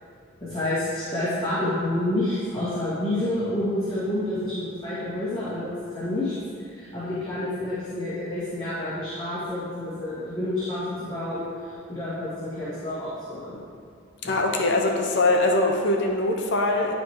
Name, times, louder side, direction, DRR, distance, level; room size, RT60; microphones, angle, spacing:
voice 1, 0.4-6.3 6.6-13.6 14.2-14.4, left 1 dB, 20° left, -13 dB, 1.9 m, -29 dB
voice 2, 14.2-16.9, left 2 dB, 55° left, 1 dB, 0.8 m, -22 dB
11.0 x 3.6 x 4.7 m, 2.5 s
head